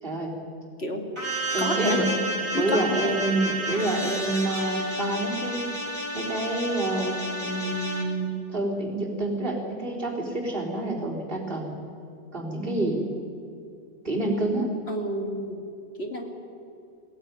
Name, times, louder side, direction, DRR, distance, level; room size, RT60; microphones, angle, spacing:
voice 1, 0.0-0.3 1.5-2.1 2.5-5.6 6.1-11.8 12.3-13.0 14.0-14.7, right 2 dB, 55° right, -2 dB, 4.1 m, -28 dB
sound 1, 1.2-8.0, right 1 dB, 25° right, 4.0 m, -31 dB
voice 2, 1.6-2.0 2.5-3.1 14.9-15.6 16.0-16.4, left 1 dB, 70° left, 3 dB, 2.7 m, -29 dB
22.0 x 16.5 x 9.7 m, 2.6 s
omnidirectional pair, 1.1 m